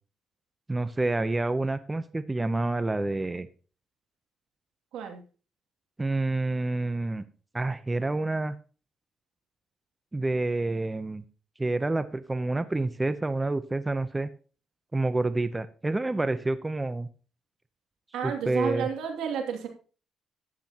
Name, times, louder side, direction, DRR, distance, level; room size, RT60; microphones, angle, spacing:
voice 1, 0.7-3.5 6.0-7.2 7.5-8.6 10.1-11.2 11.6-14.3 14.9-17.1 18.2-18.9, right 2 dB, 15° right, 12 dB, 0.7 m, -28 dB
voice 2, 18.1-19.7, right 7 dB, 85° right, 4 dB, 2.5 m, -31 dB
13.0 x 9.9 x 2.9 m, 0.37 s
cardioid pair, 90°, 0 cm